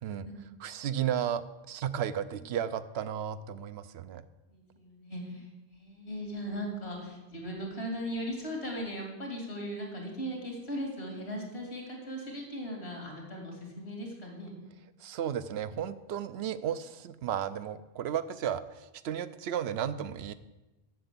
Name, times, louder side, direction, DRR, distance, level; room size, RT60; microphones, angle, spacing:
voice 1, 0.6-4.2 15.0-20.3, right 9 dB, 80° right, 13 dB, 0.8 m, -34 dB
voice 2, 4.5-14.5, equal, 85° left, 0 dB, 2.9 m, -38 dB
7.8 x 6.8 x 8.2 m, 1.0 s
omnidirectional pair, 1.1 m